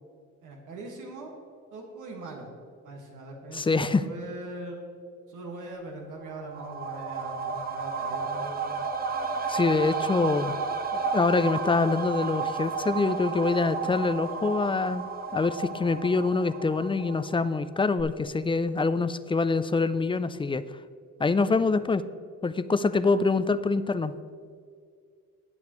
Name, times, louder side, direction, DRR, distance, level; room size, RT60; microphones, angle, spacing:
voice 1, 0.4-1.3 1.7-2.5 2.8-4.8 5.3-8.8 21.5-21.6 23.0-23.3, right 2 dB, 80° right, 0 dB, 1.8 m, -41 dB
voice 2, 3.5-4.0 9.5-10.5 11.1-20.6 21.2-22.0 22.4-24.1, left 3 dB, 15° left, 13 dB, 0.4 m, -25 dB
sound 1, 6.2-17.7 18.0-18.1, right 5 dB, 30° right, 1.1 m, -32 dB
19.5 x 7.0 x 3.1 m, 2.2 s
cardioid pair, 90°, 30 cm